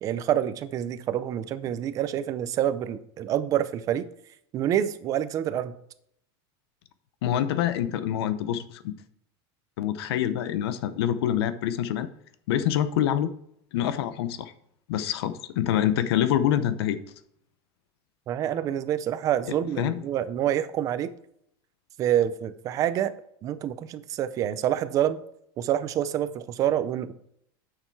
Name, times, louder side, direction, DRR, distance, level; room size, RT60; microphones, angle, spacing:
voice 1, 0.0-4.1 4.5-5.7 18.3-21.1 22.0-23.1 23.4-25.2 25.6-27.1, right 11 dB, 25° right, 13 dB, 0.5 m, -27 dB
voice 2, 7.2-8.9 9.8-12.1 12.5-13.3 13.7-14.5 14.9-17.0 19.8-20.0, left 11 dB, 85° left, 12 dB, 0.8 m, -26 dB
9.2 x 6.6 x 4.6 m, 0.73 s
supercardioid pair, 175°, 13 cm